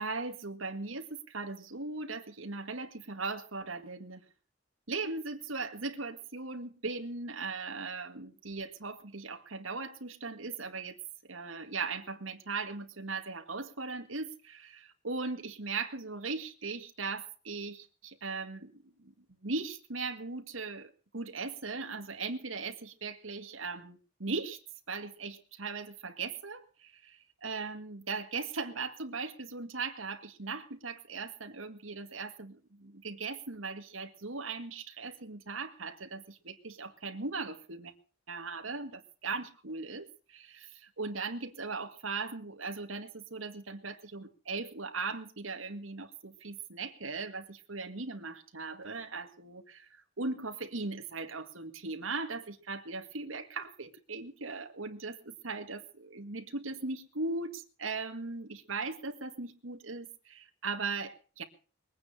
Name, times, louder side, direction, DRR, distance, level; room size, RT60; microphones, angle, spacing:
voice 1, 0.0-4.2 4.9-11.0 11.3-19.1 19.4-24.6 24.9-37.9 38.3-61.4, right 3 dB, 85° right, 5 dB, 2.0 m, -39 dB
21.5 x 9.5 x 6.6 m, 0.38 s
head